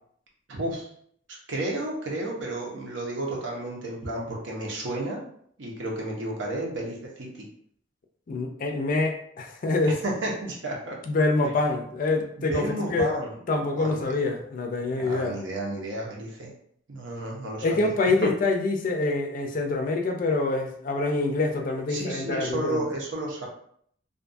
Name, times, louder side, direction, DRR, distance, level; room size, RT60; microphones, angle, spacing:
voice 1, 0.5-0.9 1.5-5.2 5.6-7.4 9.9-10.9 12.5-13.3 13.8-14.2 15.0-16.5 16.9-17.9 21.9-23.5, right 1 dB, 80° right, -2 dB, 0.8 m, -32 dB
voice 2, 8.3-10.0 11.1-13.1 13.5-15.4 17.6-22.8, left 3 dB, 45° left, 3 dB, 0.4 m, -26 dB
2.5 x 2.2 x 2.5 m, 0.65 s
head